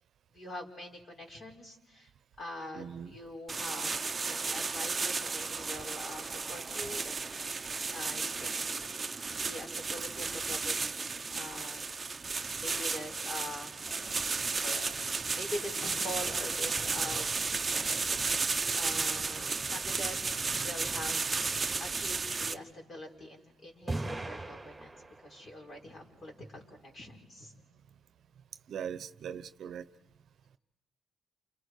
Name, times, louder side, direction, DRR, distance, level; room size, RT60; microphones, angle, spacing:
voice 1, 0.3-2.1 2.4-7.6 7.9-8.8 9.4-11.8 12.6-13.7 15.3-17.3 18.7-20.2 20.6-27.5, left 1 dB, 40° left, 1 dB, 5.6 m, -44 dB
voice 2, 2.7-3.1 28.7-29.8, right 8 dB, 65° right, 13 dB, 0.8 m, -40 dB
sound 1, 3.5-22.5, right 4 dB, 30° right, 0.8 m, -34 dB
sound 2, 12.7-19.8, left 4 dB, 70° left, 1.6 m, -50 dB
sound 3, 23.9-25.5, right 2 dB, 10° right, 2.8 m, -38 dB
29.5 x 29.0 x 4.9 m, 0.88 s
cardioid pair, 90°, 0 cm